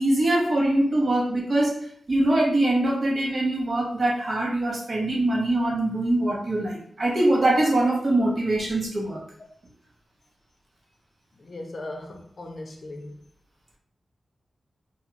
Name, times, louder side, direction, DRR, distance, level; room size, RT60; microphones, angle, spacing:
voice 1, 0.0-9.2, right 1 dB, 55° right, -3 dB, 0.9 m, -23 dB
voice 2, 11.3-13.2, left 2 dB, 60° left, 2 dB, 0.5 m, -38 dB
2.4 x 2.2 x 3.1 m, 0.62 s
cardioid pair, 50°, 0 cm